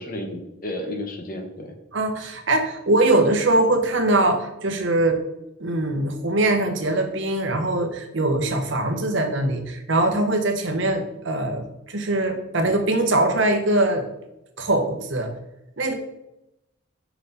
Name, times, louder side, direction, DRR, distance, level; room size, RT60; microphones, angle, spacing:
voice 1, 0.0-1.7, left 1 dB, 40° left, 5 dB, 0.9 m, -32 dB
voice 2, 1.9-5.2 5.6-14.1 14.6-15.3 15.8-15.9, right 2 dB, 60° right, 5 dB, 1.0 m, -22 dB
6.2 x 5.7 x 3.9 m, 0.88 s
head